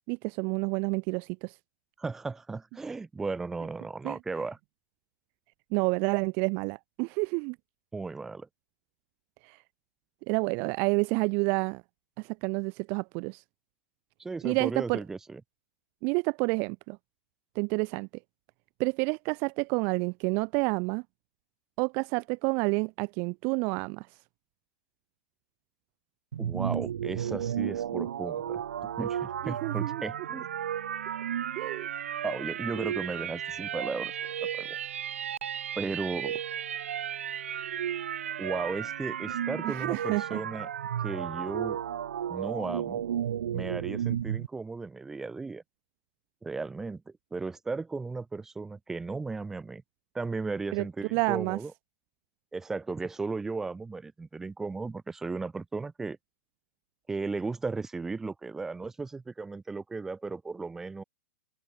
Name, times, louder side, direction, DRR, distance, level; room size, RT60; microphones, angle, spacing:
voice 1, 0.1-1.6 4.0-4.2 5.7-7.6 9.4-9.6 10.3-11.8 12.2-13.4 14.4-15.0 16.0-17.0 17.6-18.1 18.8-21.0 21.8-24.1 29.4-30.0 31.6-31.9 39.6-40.4 50.7-50.9 51.1-51.6, right 33 dB, 30° right, 2.1 m, -29 dB
voice 2, 2.0-4.6 7.9-8.5 14.2-15.4 26.4-28.6 29.0-30.5 32.2-34.1 34.5-34.8 35.8-36.4 38.4-40.7 41.0-41.8 42.3-43.0 43.5-45.6 46.4-47.0 47.3-49.8 50.1-51.7 52.5-56.2 57.1-61.0, right 4 dB, 5° right, 3.8 m, -35 dB
sound 1, 26.3-44.5, right 9 dB, 75° right, 2.5 m, -33 dB
hypercardioid pair, 170°, 7 cm